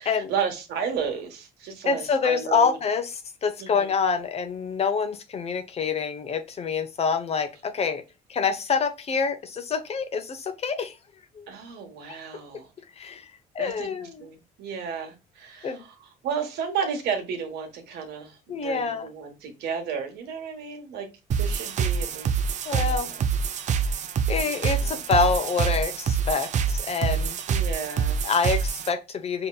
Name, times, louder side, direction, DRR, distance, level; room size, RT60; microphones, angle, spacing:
voice 1, 0.0-2.8 3.6-4.0 11.5-12.7 13.6-21.1 21.4-23.2 24.4-25.0 27.5-28.2, right 6 dB, 80° right, 1.3 m, -33 dB
voice 2, 1.8-8.0 8.3-11.0 11.3-11.5 13.0-14.3 15.6-15.8 18.5-19.1 22.7-23.1 24.3-27.4 28.2-29.5, left 5 dB, 40° left, 0.7 m, -26 dB
sound 1, 21.3-28.9, right 6 dB, 45° right, 0.5 m, -26 dB
5.3 x 2.8 x 2.3 m
cardioid pair, 110°, 17 cm